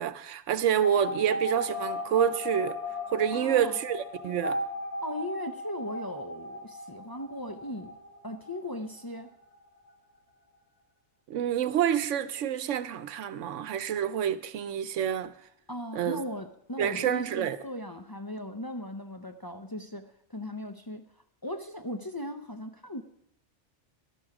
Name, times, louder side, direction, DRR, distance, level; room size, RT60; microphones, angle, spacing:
voice 1, 0.0-2.8 3.1-4.6 11.3-15.3 15.9-16.2 16.8-17.6, right 9 dB, 85° right, 1.1 m, -28 dB
sound 1, 0.8-9.3 9.6-9.7 9.9-10.0, left 2 dB, 65° left, 1.7 m, -36 dB
voice 2, 3.3-3.8 5.0-7.9 8.2-9.3 15.7-21.0 21.4-23.0, left 1 dB, 25° left, 0.6 m, -38 dB
12.5 x 12.0 x 4.9 m
omnidirectional pair, 1.2 m